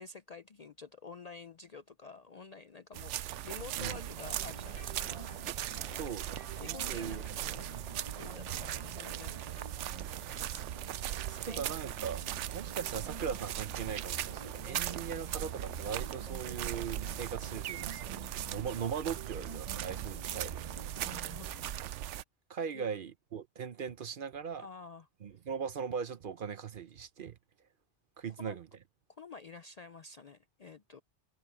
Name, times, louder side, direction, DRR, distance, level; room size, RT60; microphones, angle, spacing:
voice 1, 0.0-9.4 10.3-10.6 11.3-12.0 21.0-21.7 22.7-22.9 24.6-25.1 28.4-28.6 29.1-31.0, left 4 dB, 50° left, 0.5 m, -50 dB
sound 1, 2.9-22.2, right 12 dB, 80° right, 0.9 m, -39 dB
sound 2, 3.7-21.8, right 2 dB, 30° right, 1.8 m, -50 dB
voice 2, 6.0-7.3 7.7-7.8 9.0-9.1 11.5-12.2 12.5-21.1 22.5-24.7 25.2-27.4 28.2-28.7, right 7 dB, 55° right, 0.8 m, -40 dB
sound 3, 8.9-17.9, equal, 10° left, 6.7 m, -66 dB
omnidirectional pair, 1.2 m